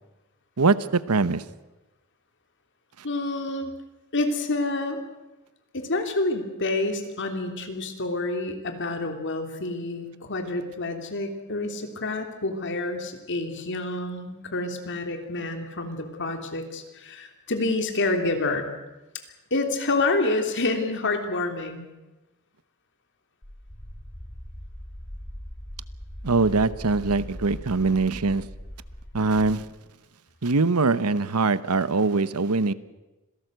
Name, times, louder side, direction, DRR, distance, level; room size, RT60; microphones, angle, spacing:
voice 1, 0.6-1.4 26.2-28.5 29.1-29.7 30.4-32.7, right 3 dB, 90° right, 16 dB, 1.0 m, -22 dB
voice 2, 3.0-3.7 4.1-5.0 5.7-18.7 19.5-21.9, left 2 dB, 55° left, 5 dB, 3.2 m, -28 dB
sound 1, 23.4-29.6, equal, 30° left, 2.2 m, -40 dB
26.0 x 17.5 x 8.0 m, 1.1 s
head